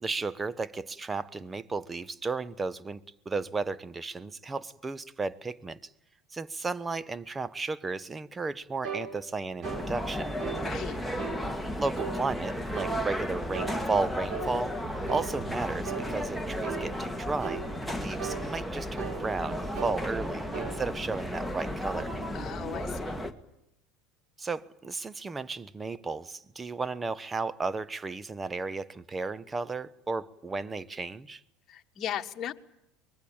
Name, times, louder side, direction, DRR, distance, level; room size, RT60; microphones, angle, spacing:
voice 1, 0.0-5.8 6.3-10.3 11.7-17.6 17.9-22.1 24.4-31.4, right 3 dB, 20° right, 1.1 m, -34 dB
sound 1, 8.8-9.1 9.6-9.9 10.4-10.6 11.2-11.4 12.0-12.2 12.7-13.0 13.5-13.8 14.3-14.5 15.1-15.3 15.8-16.1 16.6-16.9 17.4-17.7 18.2-18.4 19.0-19.2 19.7-20.0 20.5-20.7, right 7 dB, 50° right, 4.8 m, -37 dB
sound 2, 9.6-23.3, equal, ahead, 2.2 m, -34 dB
voice 2, 10.6-11.0 22.3-23.2 31.7-32.5, left 10 dB, 40° left, 1.6 m, -37 dB
24.0 x 21.5 x 8.8 m
hypercardioid pair, 80°, 0 cm